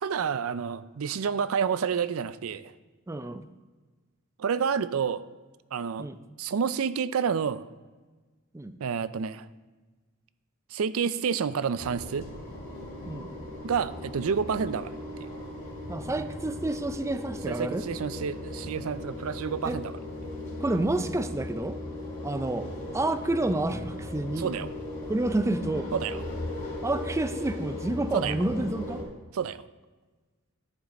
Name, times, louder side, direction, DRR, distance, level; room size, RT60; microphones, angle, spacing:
voice 1, 0.0-2.7 4.4-5.2 5.7-6.1 6.4-7.7 8.8-9.5 10.7-12.3 13.6-15.3 17.5-19.9 20.2-20.3 24.4-24.7 25.9-26.2 28.1-28.4 29.3-29.6, right 6 dB, 75° right, 15 dB, 0.4 m, -29 dB
voice 2, 3.1-3.4 6.0-6.2 8.5-8.8 13.0-13.3 15.9-17.8 19.6-19.8 20.6-21.8 22.2-22.7 22.9-24.5 25.1-25.9 26.8-29.0, right 2 dB, 15° right, 11 dB, 0.4 m, -29 dB
sound 1, 11.8-29.0, left 1 dB, 40° left, 2.9 m, -38 dB
11.0 x 6.1 x 4.1 m, 1.3 s
head